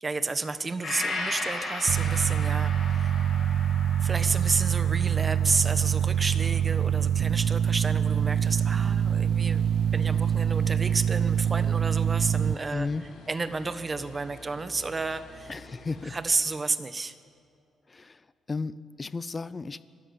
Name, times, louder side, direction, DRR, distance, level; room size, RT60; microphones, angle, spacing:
voice 1, 0.0-3.6 4.0-9.6 9.9-12.9 13.3-15.5 16.0-17.1, right 3 dB, 30° right, 11 dB, 1.2 m, -31 dB
Gong, 0.8-8.5 8.9-9.0, left 3 dB, 45° left, 5.6 m, -38 dB
sound 1, 1.9-12.5, right 9 dB, 75° right, 0.4 m, -25 dB
sound 2, 8.1-16.2, left 1 dB, 85° left, 4.2 m, -49 dB
voice 2, 12.7-13.0 15.5-16.1 17.9-19.8, left 3 dB, 30° left, 16 dB, 0.7 m, -34 dB
25.0 x 13.5 x 8.3 m, 2.3 s
cardioid pair, 95°, 0 cm